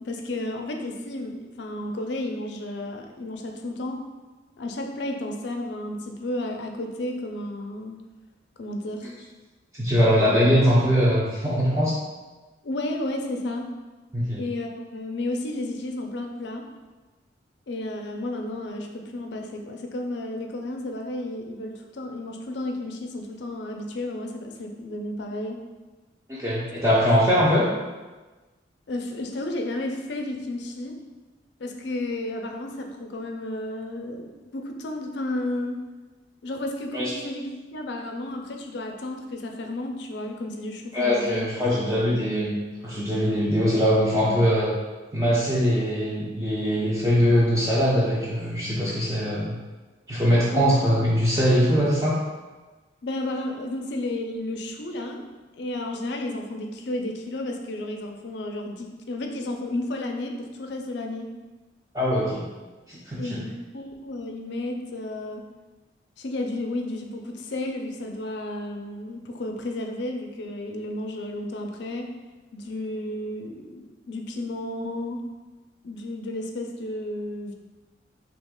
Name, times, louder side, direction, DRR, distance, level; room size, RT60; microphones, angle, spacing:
voice 1, 0.0-4.0 4.6-8.0 8.6-9.1 9.9-10.3 12.6-13.7 14.4-16.7 17.7-25.6 28.9-31.0 31.6-35.8 36.4-41.5 50.5-50.8 53.0-55.2 55.6-61.3 63.2-65.4 66.2-72.1 72.5-75.2 75.8-77.5, left 1 dB, 60° left, 3 dB, 0.4 m, -32 dB
voice 2, 9.7-12.0 14.1-14.4 26.3-27.7 36.9-37.1 40.9-42.6 42.8-44.7 45.1-49.6 50.1-52.2 61.9-62.4 62.9-63.4, equal, 15° right, -8 dB, 0.4 m, -22 dB
3.1 x 2.8 x 3.6 m, 1.2 s
head